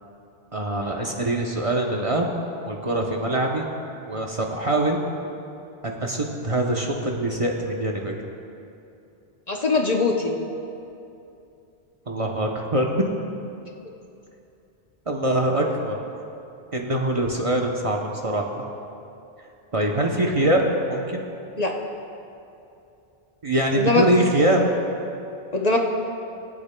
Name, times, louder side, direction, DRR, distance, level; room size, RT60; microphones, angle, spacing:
voice 1, 0.5-2.3 2.6-3.7 4.0-5.0 5.8-8.1 12.1-12.9 15.1-16.0 16.7-18.6 19.7-21.2 23.4-24.7, right 1 dB, 35° right, 0 dB, 0.8 m, -23 dB
voice 2, 9.5-10.3 21.6-21.7 23.7-24.0 25.5-25.8, left 3 dB, 45° left, 1 dB, 0.7 m, -21 dB
25.0 x 8.7 x 2.2 m, 2.7 s
omnidirectional pair, 1.1 m